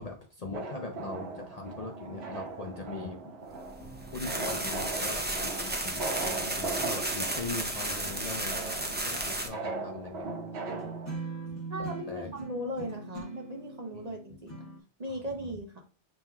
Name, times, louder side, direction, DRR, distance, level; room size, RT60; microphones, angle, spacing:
voice 1, 0.0-3.2 4.1-8.6 9.0-10.3 11.8-12.3 13.9-14.1 15.1-15.6, left 3 dB, 45° left, 1 dB, 0.6 m, -40 dB
sound 1, 0.5-11.1, right 3 dB, 75° right, 1.1 m, -39 dB
sound 2, 1.3-5.7 5.9-14.8, right 3 dB, 15° left, 1.4 m, -45 dB
sound 3, 3.7-9.5, right 1 dB, 15° right, 0.4 m, -33 dB
voice 2, 11.7-14.7 15.0-15.8, equal, 40° right, 2 dB, 0.9 m, -38 dB
7.3 x 3.1 x 2.3 m, 0.38 s
omnidirectional pair, 1.1 m